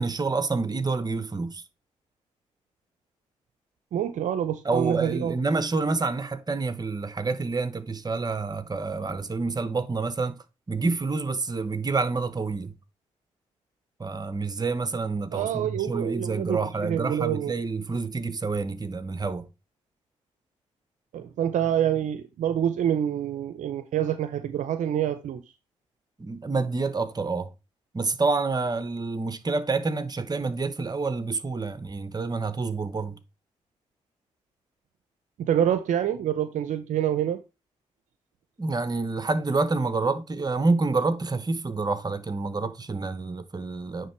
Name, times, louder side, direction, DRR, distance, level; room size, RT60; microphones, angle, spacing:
voice 1, 0.0-1.6 4.6-10.4 10.7-12.7 14.0-19.5 26.2-27.5 27.9-33.2 38.6-44.1, right 3 dB, 30° right, 1.0 m, -28 dB
voice 2, 3.9-5.3 15.3-17.5 21.1-25.4 35.4-37.4, right 10 dB, 75° right, 0.6 m, -26 dB
9.3 x 3.3 x 4.4 m
supercardioid pair, 55°, 13 cm